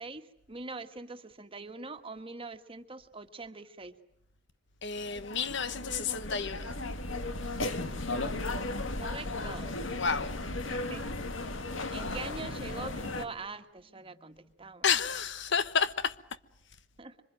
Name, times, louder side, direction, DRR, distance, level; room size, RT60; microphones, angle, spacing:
voice 1, 0.0-4.0 9.0-9.8 10.7-11.1 11.9-14.8 17.0-17.1, right 3 dB, 30° right, 1.5 m, -43 dB
voice 2, 4.8-6.6 10.0-10.3 14.8-16.1, left 6 dB, 65° left, 1.1 m, -30 dB
sound 1, 4.9-13.2, left 2 dB, 90° left, 1.9 m, -35 dB
26.0 x 25.0 x 9.1 m
head